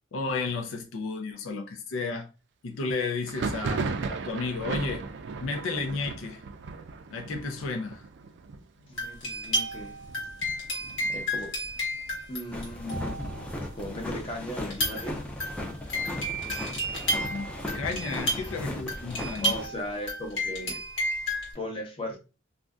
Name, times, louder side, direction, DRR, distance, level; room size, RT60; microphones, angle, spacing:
voice 1, 0.1-2.3 2.6-5.0 5.4-6.4 7.1-8.0 17.2-17.5 17.7-19.5, left 4 dB, 85° left, 0.5 m, -33 dB
Thunder, 3.2-12.7 13.0-13.7 13.9-14.9 15.3-17.0, right 4 dB, 60° right, 0.4 m, -37 dB
voice 2, 8.9-9.9 11.1-11.5 12.3-15.2 19.4-20.8 21.5-22.2, left 1 dB, 25° left, 0.7 m, -37 dB
sound 1, 9.0-13.5 14.6-21.5, equal, 70° left, 1.2 m, -32 dB
sound 2, 12.5-19.7, left 1 dB, 5° left, 0.4 m, -37 dB
2.5 x 2.1 x 3.5 m
head